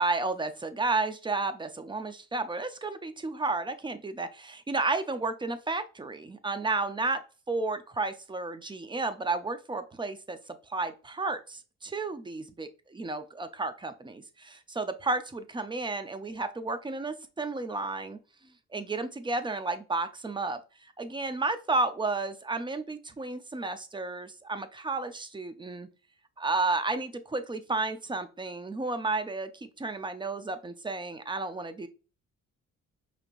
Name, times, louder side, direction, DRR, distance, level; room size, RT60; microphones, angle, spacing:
voice 1, 0.0-7.2 7.5-10.4 10.7-12.7 12.9-18.2 18.7-20.6 21.0-25.9 26.4-31.9, right 3 dB, 15° right, 0.6 m, -32 dB
5.0 x 2.9 x 2.5 m
cardioid pair, 90°, 30 cm